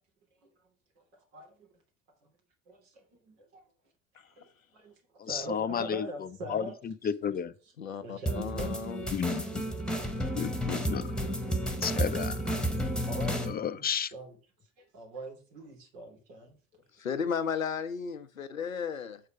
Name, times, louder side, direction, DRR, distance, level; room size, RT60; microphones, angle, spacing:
voice 1, 1.3-1.7 2.2-2.3 2.7-3.7 4.3-6.8 8.0-8.7 11.9-12.0 13.0-14.4 14.8-16.9, right 1 dB, 65° right, 2.9 m, -43 dB
voice 2, 5.2-7.5 9.1-9.8 10.3-11.0 11.8-12.4 13.5-14.1, left 8 dB, 25° left, 0.6 m, -33 dB
voice 3, 7.8-9.2 17.0-19.2, left 6 dB, 85° left, 0.7 m, -34 dB
sound 1, 8.3-13.5, equal, ahead, 1.4 m, -31 dB
7.2 x 4.7 x 4.9 m
figure-of-eight pair, 60°, 39 cm